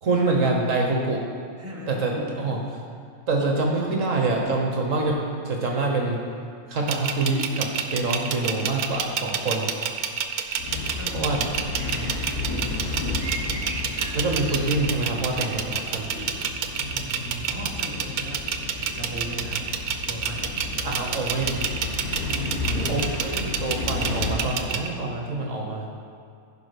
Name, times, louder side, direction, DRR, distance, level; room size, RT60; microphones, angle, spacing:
voice 1, 0.0-1.2 1.9-2.6 3.3-6.2 6.7-9.7 11.1-11.4 14.1-16.3 20.8-21.7 22.9-25.9, right 2 dB, 65° right, 0 dB, 1.5 m, -26 dB
voice 2, 1.5-2.5 11.0-13.2 16.8-18.5 18.8-19.7 20.1-20.5 22.2-23.2, right 1 dB, 10° right, -3 dB, 1.3 m, -37 dB
sound 1, 6.9-24.9, right 7 dB, 90° right, 1.2 m, -28 dB
sound 2, 10.6-24.4, left 3 dB, 85° left, 1.8 m, -33 dB
sound 3, 11.1-12.2 12.6-15.4, right 2 dB, 35° right, 1.2 m, -39 dB
15.5 x 5.2 x 5.2 m, 2.3 s
omnidirectional pair, 1.5 m